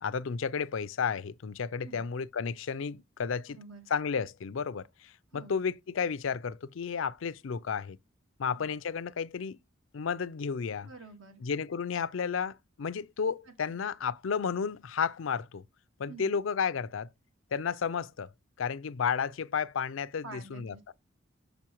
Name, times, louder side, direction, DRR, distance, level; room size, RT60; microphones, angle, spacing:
voice 1, 0.0-3.6 3.9-8.0 8.4-9.6 9.9-10.9 11.4-15.6 16.0-17.1 17.5-18.3 18.6-20.7, left 6 dB, 75° left, 0.5 m, -32 dB
voice 2, 3.5-3.9 5.3-5.6 8.5-8.7 10.8-11.4 13.5-13.8 16.1-16.4 20.2-20.9, right 3 dB, 80° right, 1.6 m, -49 dB
6.9 x 5.9 x 3.0 m
head